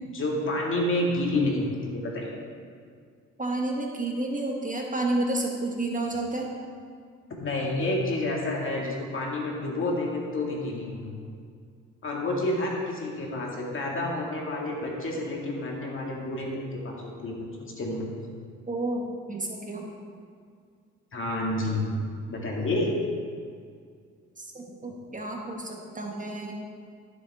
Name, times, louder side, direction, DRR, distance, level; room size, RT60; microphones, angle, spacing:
voice 1, 0.0-2.3 7.4-11.2 12.0-18.0 21.1-22.0 22.3-22.9, left 2 dB, 40° left, -2 dB, 2.3 m, -29 dB
voice 2, 3.4-6.5 18.7-19.9 24.4-26.5, right 2 dB, 25° right, 0 dB, 1.4 m, -30 dB
13.5 x 7.3 x 3.7 m, 2.1 s
cardioid pair, 90°, 30 cm